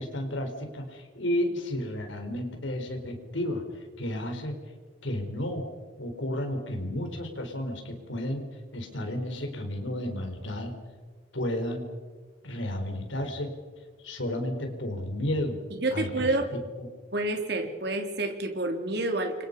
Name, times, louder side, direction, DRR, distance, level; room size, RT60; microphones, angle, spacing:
voice 1, 0.0-4.6 5.0-5.6 6.0-8.4 8.7-10.7 11.3-11.9 12.4-13.5 14.0-15.6 15.9-16.3 16.8-16.9, left 1 dB, 75° left, 4 dB, 4.6 m, -32 dB
voice 2, 15.7-16.5 17.1-19.4, right 2 dB, 55° right, 4 dB, 3.5 m, -29 dB
29.5 x 25.5 x 5.5 m, 1.4 s
head